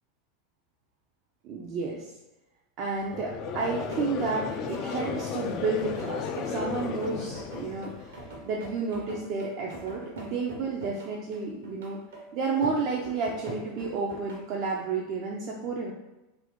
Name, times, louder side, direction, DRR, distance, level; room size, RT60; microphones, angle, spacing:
voice 1, 1.4-2.1 2.8-12.0 12.3-15.9, right 4 dB, 50° right, -2 dB, 0.5 m, -31 dB
Conversation / Crowd, 3.1-8.4, left 6 dB, 45° left, 0.3 m, -34 dB
sound 1, 3.9-14.8, right 1 dB, 75° right, 0.9 m, -43 dB
2.7 x 2.5 x 3.5 m, 0.97 s
hypercardioid pair, 85°, 0 cm